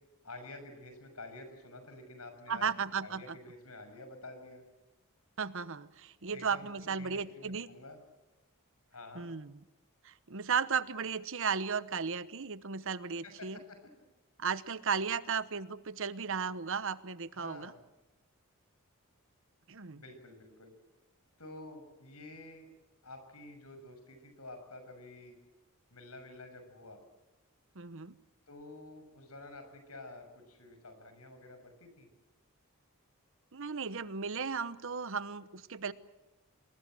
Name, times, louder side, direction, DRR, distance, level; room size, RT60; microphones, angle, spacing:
voice 1, 0.2-2.7 3.0-4.6 6.3-8.0 8.9-9.3 13.2-13.8 17.3-17.8 19.9-20.7 21.4-22.7 23.0-25.4 25.9-27.0 28.5-32.1, left 2 dB, 85° left, 7 dB, 6.6 m, -49 dB
voice 2, 2.5-3.4 5.4-7.7 9.1-9.6 10.0-13.6 14.4-17.7 19.7-20.0 27.7-28.2 33.5-35.9, right 6 dB, 60° right, 15 dB, 1.0 m, -35 dB
27.0 x 21.0 x 7.7 m, 1.1 s
head